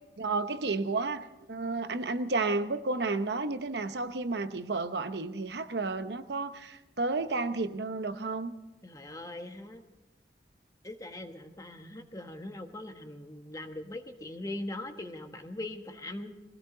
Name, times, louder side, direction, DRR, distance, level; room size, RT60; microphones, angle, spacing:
voice 1, 0.2-8.5, right 3 dB, 70° right, 9 dB, 0.9 m, -32 dB
voice 2, 8.8-9.8 10.8-16.3, left 1 dB, 20° left, 6 dB, 1.2 m, -41 dB
22.0 x 17.0 x 3.9 m, 1.1 s
head